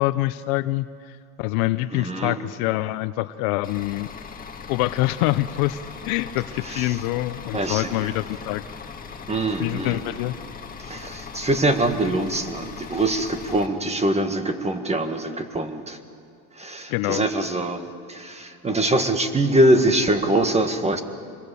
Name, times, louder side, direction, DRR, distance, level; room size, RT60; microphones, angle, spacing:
voice 1, 0.0-4.1 4.7-8.8 9.6-10.3 16.9-17.2, left 17 dB, 70° left, 13 dB, 0.8 m, -25 dB
voice 2, 1.9-2.4 6.6-7.0 7.5-8.2 9.3-10.0 10.9-16.0 16.5-21.0, right 1 dB, 15° right, 8 dB, 1.7 m, -23 dB
Bus / Idling, 3.6-13.7, left 5 dB, 20° left, 1.9 m, -39 dB
26.0 x 21.5 x 6.9 m, 2.3 s
supercardioid pair, 120°, 44 cm